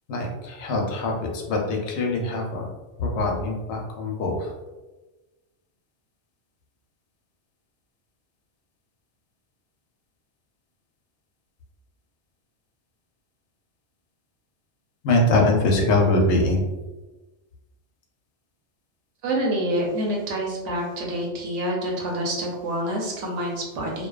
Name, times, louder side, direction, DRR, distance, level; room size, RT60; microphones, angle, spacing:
voice 1, 0.1-2.7 3.0-4.5 15.0-16.6, left 2 dB, 75° left, 0 dB, 0.8 m, -23 dB
voice 2, 19.2-24.1, right 1 dB, 80° right, -2 dB, 1.0 m, -27 dB
2.6 x 2.1 x 2.3 m, 1.1 s
omnidirectional pair, 1.2 m